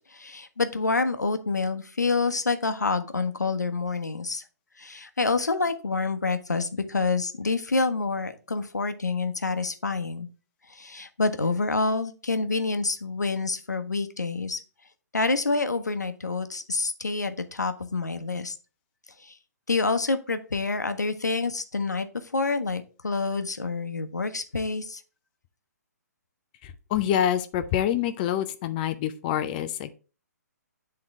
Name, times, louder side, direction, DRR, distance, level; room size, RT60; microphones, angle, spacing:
voice 1, 0.1-4.4 4.8-10.3 10.7-14.6 15.1-18.5 19.2-19.3 19.7-22.1 22.3-25.0, left 3 dB, 85° left, 9 dB, 0.9 m, -27 dB
voice 2, 26.9-29.9, left 10 dB, 30° left, 10 dB, 0.5 m, -26 dB
8.8 x 3.8 x 3.5 m, 0.35 s
figure-of-eight pair, 130°, 9 cm